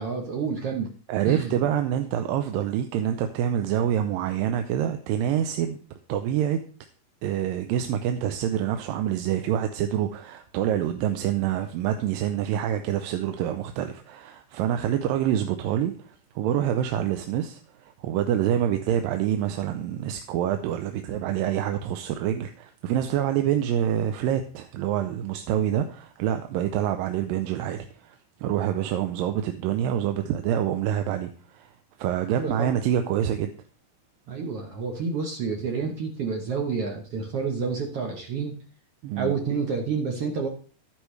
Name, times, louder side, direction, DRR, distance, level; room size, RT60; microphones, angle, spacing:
voice 1, 0.0-0.9 1.2-1.5 32.3-32.8 34.3-38.5 39.2-40.5, right 5 dB, 65° right, 3 dB, 1.5 m, -29 dB
voice 2, 1.1-5.8 6.1-6.6 7.2-31.7 32.0-33.5 39.0-39.3, right 10 dB, 85° right, 7 dB, 2.4 m, -26 dB
12.0 x 9.9 x 3.2 m, 0.42 s
omnidirectional pair, 4.1 m